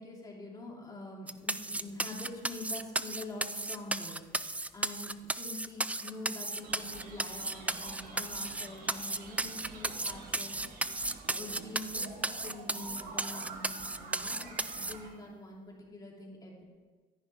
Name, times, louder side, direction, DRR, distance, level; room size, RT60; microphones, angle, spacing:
voice 1, 0.0-11.0 11.3-16.7, left 2 dB, 20° left, -2 dB, 2.8 m, -45 dB
sound 1, 1.3-14.9, right 2 dB, 10° right, 0.3 m, -34 dB
sound 2, 6.6-15.1, right 4 dB, 60° right, 2.1 m, -48 dB
14.5 x 10.5 x 3.5 m, 1.4 s
cardioid pair, 110°, 17 cm